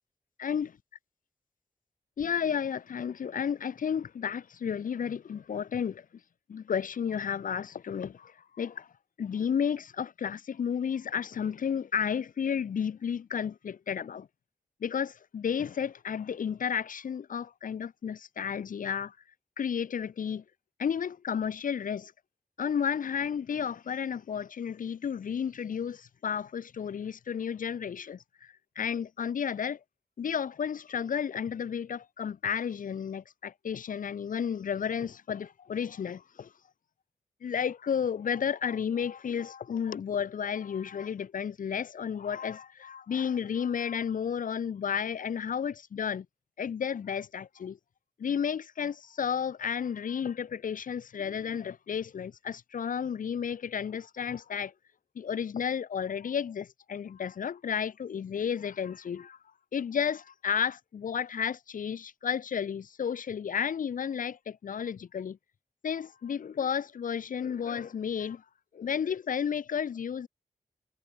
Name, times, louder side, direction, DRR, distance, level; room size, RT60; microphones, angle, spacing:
voice 1, 0.4-0.7 2.2-6.0 6.5-8.9 9.2-14.3 14.8-19.1 19.6-20.4 20.8-22.1 22.6-29.8 30.2-36.5 37.4-46.3 46.6-47.8 48.2-54.7 55.1-59.4 59.7-65.4 65.8-68.4 68.7-70.3, left 7 dB, 85° left, 3.0 m, -32 dB
cardioid pair, 55°, 14 cm